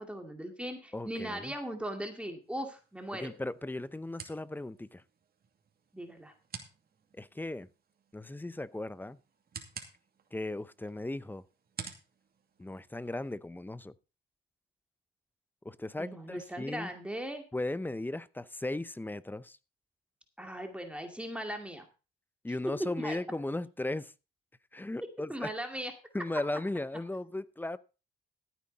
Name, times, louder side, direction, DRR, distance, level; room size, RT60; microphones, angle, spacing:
voice 1, 0.0-3.3 5.9-6.3 16.0-17.4 20.4-21.9 22.6-23.2 25.3-25.9, right 1 dB, 5° right, 2.3 m, -38 dB
voice 2, 0.9-1.5 3.1-5.0 7.1-7.7 8.1-9.2 10.3-11.4 12.6-13.9 15.6-16.9 17.5-19.6 22.4-24.1 24.7-25.5 26.1-27.8, left 2 dB, 10° left, 0.6 m, -37 dB
sound 1, 2.4-13.4, right 6 dB, 50° right, 2.5 m, -51 dB
14.5 x 8.8 x 4.1 m
cardioid pair, 90°, 20 cm